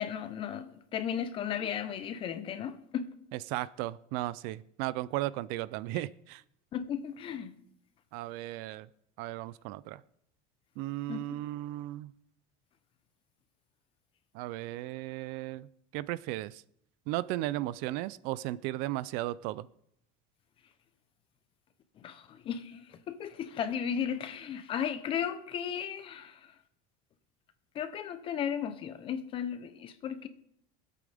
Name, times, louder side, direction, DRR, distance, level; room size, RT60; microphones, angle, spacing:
voice 1, 0.0-3.0 6.7-7.5 11.1-11.2 22.0-26.5 27.7-30.3, left 8 dB, 30° left, 0.9 m, -35 dB
voice 2, 3.5-6.4 8.1-8.9 9.2-10.0 10.8-12.1 14.3-15.7 15.9-16.6 17.1-19.7, right 16 dB, 60° right, 0.4 m, -35 dB
23.5 x 8.5 x 3.5 m
cardioid pair, 170°, 17 cm